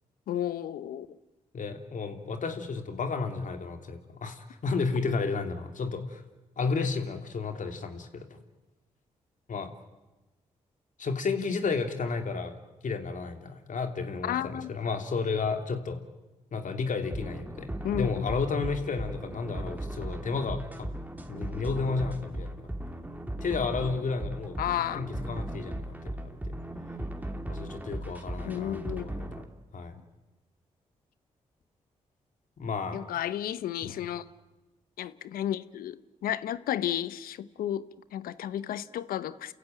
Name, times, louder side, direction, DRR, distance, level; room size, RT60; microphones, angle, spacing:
voice 1, 0.3-1.1 14.2-14.7 17.8-18.1 24.6-25.0 28.4-29.1 32.9-34.2 35.0-39.5, left 11 dB, 80° left, 16 dB, 0.9 m, -32 dB
voice 2, 1.5-6.2 6.6-8.4 9.5-9.7 11.0-16.0 16.5-17.7 18.0-20.9 21.3-22.6 23.4-24.6 24.9-25.7 26.0-26.2 27.5-29.3 29.7-30.0 32.6-33.0, left 4 dB, 60° left, 6 dB, 3.0 m, -32 dB
sound 1, 17.0-29.5, right 1 dB, 10° right, 2.8 m, -37 dB
29.0 x 15.0 x 9.0 m, 1.1 s
supercardioid pair, 45°, 15 cm